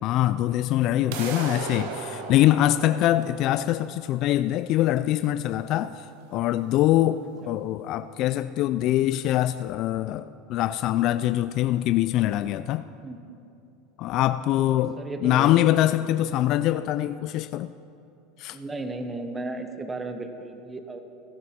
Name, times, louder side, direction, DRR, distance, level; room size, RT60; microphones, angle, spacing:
voice 1, 0.0-12.9 14.0-17.7 18.4-18.6, left 13 dB, 55° left, 13 dB, 0.3 m, -24 dB
sound 1, 1.1-7.1, right 5 dB, 75° right, 1.3 m, -38 dB
voice 2, 14.6-15.8 18.5-21.0, right 2 dB, 20° right, 8 dB, 1.0 m, -35 dB
19.5 x 11.0 x 4.3 m, 2.7 s
supercardioid pair, 105°, 0 cm